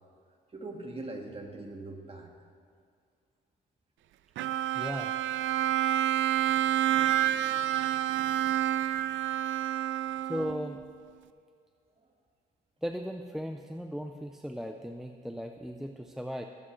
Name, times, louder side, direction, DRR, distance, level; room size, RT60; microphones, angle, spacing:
voice 1, 0.5-2.3 9.8-10.3 12.0-12.1, right 2 dB, 30° right, 2 dB, 1.8 m, -42 dB
Bowed string instrument, 4.4-10.8, right 12 dB, 75° right, 0.5 m, -28 dB
voice 2, 4.7-5.1 10.3-10.8 12.8-16.4, equal, ahead, 4 dB, 0.5 m, -37 dB
22.0 x 8.6 x 3.2 m, 2.2 s
cardioid pair, 90°, 20 cm